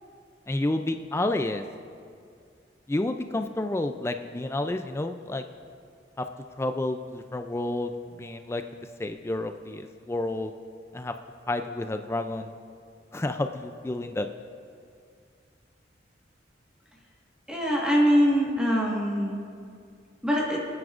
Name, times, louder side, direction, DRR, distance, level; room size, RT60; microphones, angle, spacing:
voice 1, 0.5-1.6 2.9-5.4 6.2-6.3 6.6-7.9 8.2-8.6 9.0-10.5 10.9-11.1 11.5-12.6 13.1-14.3, left 2 dB, 15° left, 7 dB, 0.3 m, -30 dB
voice 2, 17.5-19.4 20.2-20.7, equal, 5° right, -4 dB, 1.5 m, -23 dB
24.0 x 9.6 x 2.5 m, 2.2 s
head